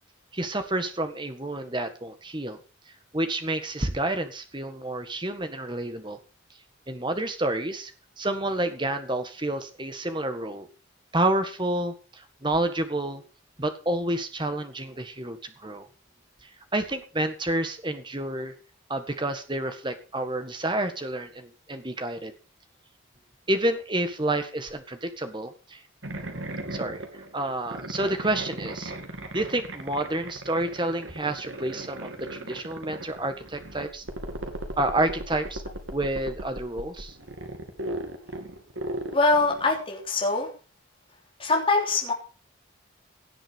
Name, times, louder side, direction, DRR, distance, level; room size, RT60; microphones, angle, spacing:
voice 1, 0.3-2.6 3.1-6.2 6.9-7.9 8.2-10.7 11.1-13.2 13.6-15.9 16.7-18.5 18.9-22.3 23.5-25.8 26.7-27.0 27.3-28.9 29.3-34.0 34.8-35.6 35.9-37.2, right 1 dB, 20° right, 8 dB, 1.7 m, -29 dB
sound 1, 26.0-39.8, right 1 dB, 70° right, 2.5 m, -37 dB
voice 2, 39.1-40.5 41.4-42.1, left 3 dB, 25° left, -1 dB, 3.5 m, -23 dB
17.5 x 7.8 x 5.4 m, 0.36 s
head